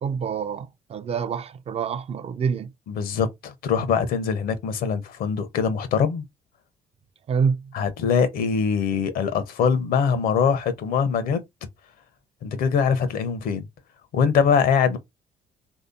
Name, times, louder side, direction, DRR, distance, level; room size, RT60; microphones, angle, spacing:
voice 1, 0.0-2.7 7.3-7.6, right 6 dB, 40° right, 0.4 m, -26 dB
voice 2, 2.9-6.2 7.7-11.4 12.4-13.6 14.1-15.0, left 6 dB, 65° left, 0.6 m, -23 dB
3.2 x 2.7 x 2.6 m
hypercardioid pair, 60°, 16 cm